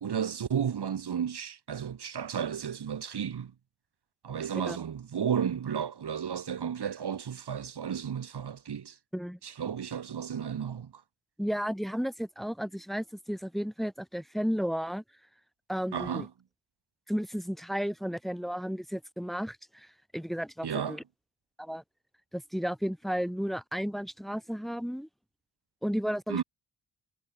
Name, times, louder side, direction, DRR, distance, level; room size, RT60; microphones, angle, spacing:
voice 1, 0.0-3.5 4.2-9.0 9.4-11.0 15.9-16.3 20.6-21.0 26.3-26.4, right 8 dB, 60° right, 1.5 m, -33 dB
voice 2, 11.4-15.0 15.7-16.3 17.1-19.9 20.1-21.0 21.6-21.8 22.3-25.1 25.8-26.4, equal, ahead, 2.1 m, -33 dB
wide cardioid pair, 140°, 46 cm